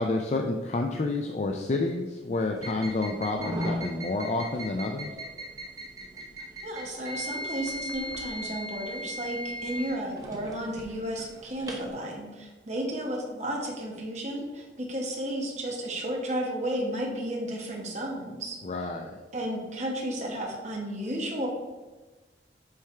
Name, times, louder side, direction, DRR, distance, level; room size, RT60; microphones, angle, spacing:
voice 1, 0.0-5.1 18.6-19.1, left 2 dB, 40° left, 3 dB, 0.4 m, -29 dB
Hotel Waffel cooker Beep, 2.6-11.9, equal, 20° right, 0.9 m, -38 dB
voice 2, 6.6-18.6 19.3-21.5, right 1 dB, 40° right, 0 dB, 1.3 m, -33 dB
7.8 x 3.5 x 4.4 m, 1.2 s
head